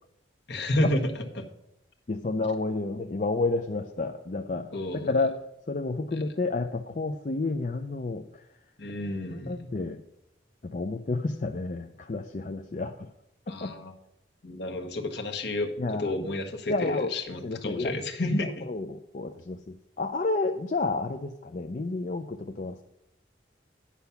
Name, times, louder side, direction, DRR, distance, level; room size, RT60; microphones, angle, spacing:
voice 1, 0.5-1.5 4.7-5.1 6.1-6.3 8.8-9.7 13.5-13.9 14.4-18.7, left 1 dB, 60° left, 4 dB, 1.3 m, -31 dB
voice 2, 2.1-4.7 5.1-5.4 5.7-8.4 9.3-10.0 10.6-13.1 13.5-13.7 15.8-16.3 16.7-17.1 17.4-17.9 18.4-22.8, left 3 dB, 40° left, 4 dB, 0.5 m, -30 dB
9.9 x 5.7 x 7.0 m, 0.83 s
head